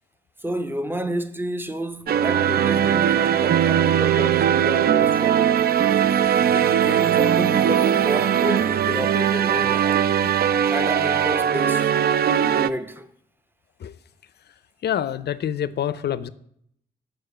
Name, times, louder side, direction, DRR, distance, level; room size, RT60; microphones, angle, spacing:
voice 1, 0.4-5.6 6.5-10.1 10.6-11.9 12.2-13.1, right 1 dB, 10° right, 0.7 m, -30 dB
sound 1, 2.1-12.7, right 9 dB, 45° right, 0.4 m, -20 dB
voice 2, 14.8-16.3, left 9 dB, 50° left, 0.5 m, -27 dB
6.7 x 4.7 x 5.6 m
hypercardioid pair, 40°, 21 cm